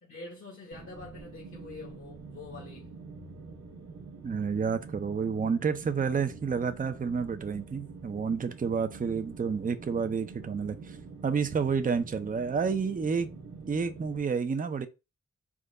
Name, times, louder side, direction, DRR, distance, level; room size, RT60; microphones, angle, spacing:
voice 1, 0.0-2.9, left 3 dB, 45° left, 0.8 m, -45 dB
sound 1, 0.7-14.2, right 4 dB, 65° right, 0.8 m, -46 dB
voice 2, 4.2-11.0 11.2-13.3 13.7-14.9, right 5 dB, 30° right, 0.5 m, -30 dB
3.6 x 2.2 x 3.7 m
wide cardioid pair, 75°, 30 cm